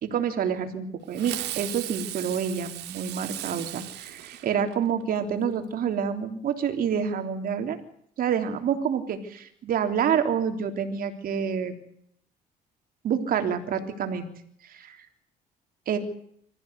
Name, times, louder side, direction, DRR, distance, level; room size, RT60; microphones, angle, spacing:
voice 1, 0.0-7.8 8.2-11.7 13.0-14.3 14.7-15.0 15.9-16.0, right 7 dB, 60° right, 6 dB, 3.4 m, -28 dB
Fireworks, 1.1-5.0, right 14 dB, 80° right, 2.3 m, -36 dB
25.5 x 14.5 x 8.2 m, 0.68 s
cardioid pair, 110°, 17 cm